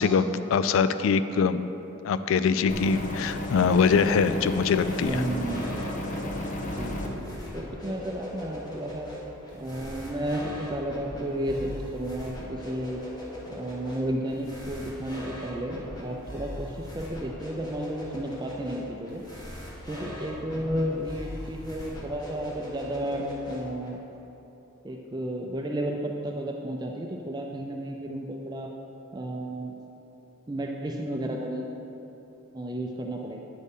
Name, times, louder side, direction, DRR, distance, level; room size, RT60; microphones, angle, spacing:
voice 1, 0.0-1.6 2.0-5.2, left 5 dB, 85° left, 12 dB, 0.3 m, -23 dB
sound 1, 2.7-7.1, left 1 dB, 40° left, 0.8 m, -33 dB
sound 2, 4.7-23.9, equal, 20° left, 1.5 m, -40 dB
voice 2, 5.0-5.7 6.0-6.3 6.7-9.1 9.5-13.0 13.5-19.2 19.9-24.0 24.8-28.7 29.1-29.7 30.5-31.7 32.5-33.4, right 1 dB, 20° right, 1 dB, 0.4 m, -32 dB
9.7 x 8.1 x 3.7 m, 3.0 s
head